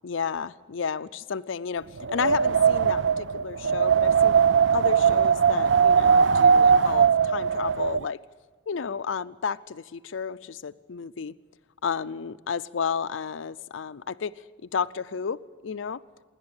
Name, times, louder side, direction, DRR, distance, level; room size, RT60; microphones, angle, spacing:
voice 1, 0.0-4.3 4.7-8.2 8.7-11.3 11.8-14.3 14.7-15.4 15.6-16.0, left 6 dB, 85° left, 12 dB, 0.5 m, -32 dB
Wind, 2.0-8.0, right 6 dB, 75° right, 0.5 m, -20 dB
26.5 x 11.5 x 8.8 m, 1.5 s
head